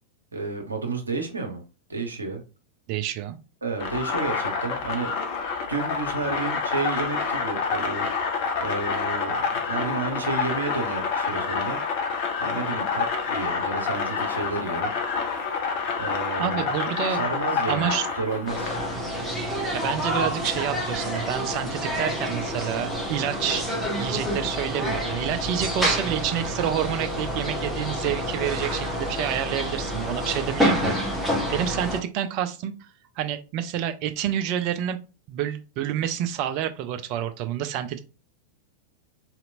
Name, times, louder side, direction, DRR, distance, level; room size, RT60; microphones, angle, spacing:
voice 1, 0.3-1.6 1.9-2.4 3.6-5.1 5.7-8.1 8.6-11.8 12.4-14.9 16.0-16.7 17.1-18.8, right 4 dB, 75° right, 3 dB, 0.8 m, -31 dB
voice 2, 2.9-3.4 16.4-17.3 17.7-18.1 19.5-30.9 31.2-32.7 33.2-35.0 35.3-38.0, right 10 dB, 45° right, 8 dB, 0.4 m, -28 dB
sound 1, 3.8-19.0, left 5 dB, 45° left, 0.6 m, -28 dB
sound 2, 18.5-32.0, equal, 5° left, 1.0 m, -28 dB
3.9 x 2.9 x 2.5 m, 0.32 s
figure-of-eight pair, 90°, 0 cm